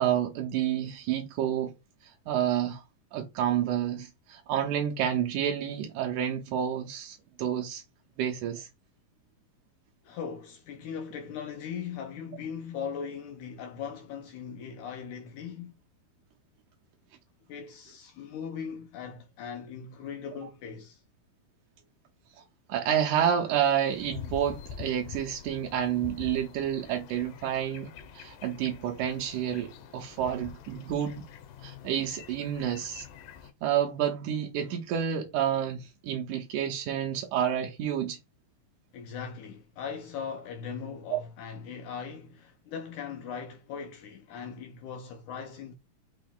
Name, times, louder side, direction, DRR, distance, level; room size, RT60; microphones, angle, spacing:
voice 1, 0.0-1.7 2.3-2.8 3.1-7.8 8.2-8.7 22.7-31.2 31.6-33.0 33.6-38.2 41.1-41.2, right 9 dB, 85° right, 1.7 m, -29 dB
voice 2, 10.0-15.8 17.5-21.0 30.2-30.4 32.5-32.7 38.9-45.7, left 7 dB, 90° left, 1.7 m, -39 dB
sound 1, 23.9-33.5, left 7 dB, 75° left, 2.1 m, -46 dB
6.4 x 2.3 x 3.6 m
omnidirectional pair, 4.3 m